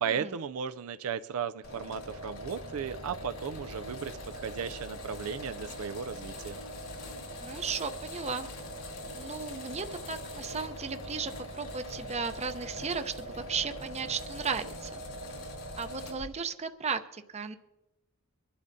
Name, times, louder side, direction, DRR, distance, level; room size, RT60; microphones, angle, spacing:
voice 1, 0.0-6.6, right 7 dB, 70° right, 11 dB, 0.4 m, -35 dB
sound 1, 1.6-16.3, equal, 75° left, 3.2 m, -42 dB
voice 2, 7.4-8.5 9.1-15.0 15.8-17.6, right 5 dB, 30° right, 9 dB, 0.7 m, -35 dB
24.0 x 11.5 x 2.7 m, 1.1 s
head